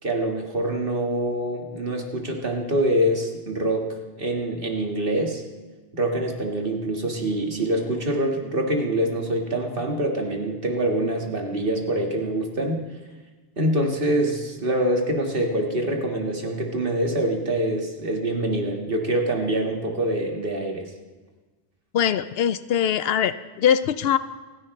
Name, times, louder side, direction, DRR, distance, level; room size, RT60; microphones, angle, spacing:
voice 1, 0.0-5.4 5.9-12.8 13.6-20.9, right 1 dB, 60° right, 1 dB, 2.0 m, -25 dB
voice 2, 21.9-24.2, left 9 dB, 75° left, 14 dB, 0.8 m, -22 dB
27.5 x 10.5 x 3.2 m, 1.3 s
omnidirectional pair, 1.0 m